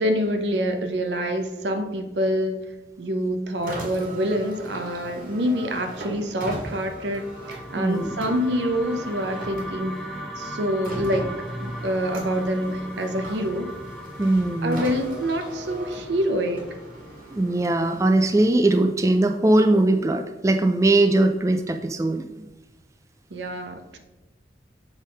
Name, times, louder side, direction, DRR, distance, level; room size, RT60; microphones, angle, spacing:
voice 1, 0.0-2.6 3.0-11.3 11.6-13.7 14.6-16.7 23.3-24.0, equal, 85° right, 6 dB, 0.8 m, -26 dB
Car, 3.6-19.0, right 1 dB, 50° right, 1.8 m, -39 dB
sound 1, 6.9-17.1, equal, ahead, 0.8 m, -39 dB
voice 2, 7.8-8.1 14.2-14.8 17.3-22.3, right 2 dB, 15° right, 7 dB, 0.3 m, -20 dB
7.2 x 3.7 x 5.2 m, 1.1 s
head